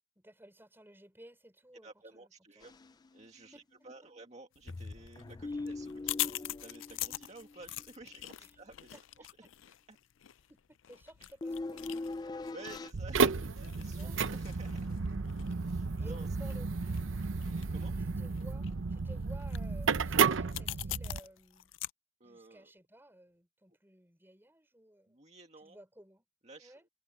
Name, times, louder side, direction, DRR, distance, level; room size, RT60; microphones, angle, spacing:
voice 1, 0.2-3.0 3.5-3.9 5.5-5.7 8.4-8.5 8.9-9.7 10.5-12.1 14.0-14.6 16.0-16.9 18.0-21.7 22.2-25.2 25.6-26.3 26.6-26.8, right 1 dB, 10° right, 5.4 m, -56 dB
voice 2, 1.8-2.7 3.1-9.5 9.9-10.0 11.2-11.3 12.5-14.9 15.5-16.6 17.5-17.9 22.2-22.7 25.1-25.8 26.4-26.9, right 3 dB, 35° right, 2.0 m, -53 dB
sound 1, 2.6-3.2 3.5-3.6 4.7-7.8 11.4-12.9, left 2 dB, 20° left, 0.3 m, -41 dB
sound 2, 4.6-21.9, left 16 dB, 85° left, 0.5 m, -44 dB
sound 3, 12.9-21.2, right 5 dB, 90° right, 0.7 m, -32 dB
head